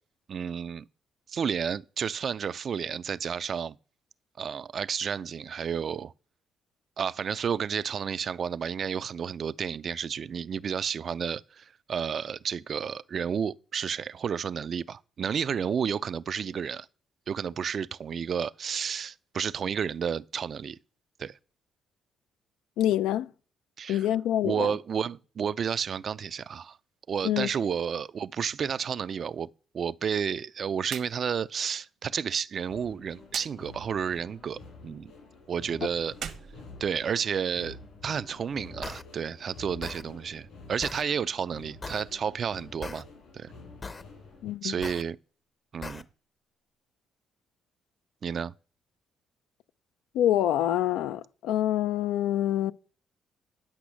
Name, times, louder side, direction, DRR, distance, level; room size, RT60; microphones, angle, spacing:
voice 1, 0.3-0.9 1.3-3.8 4.4-6.1 7.0-16.9 17.3-20.8 21.2-21.4 23.8-24.1 24.4-26.8 27.1-29.5 29.7-35.1 35.5-36.2 36.8-43.1 43.3-43.5 44.6-45.2 45.7-46.0 48.2-48.5, right 7 dB, 50° right, 0.4 m, -31 dB
voice 2, 22.8-23.3 23.9-24.7 27.2-27.5 44.4-44.8 50.1-52.7, left 12 dB, 90° left, 0.4 m, -26 dB
sound 1, 30.8-31.1 31.4-31.5 33.3-33.5 36.1-37.4, right 8 dB, 75° right, 1.2 m, -39 dB
sound 2, 32.7-44.5, left 3 dB, 75° left, 5.7 m, -49 dB
sound 3, 38.8-39.0 39.8-40.0 40.8-41.0 41.8-42.0 42.8-43.0 43.8-44.0 44.8-45.0 45.8-46.0, left 4 dB, 30° left, 0.7 m, -39 dB
10.0 x 6.2 x 6.2 m
cardioid pair, 90°, 0 cm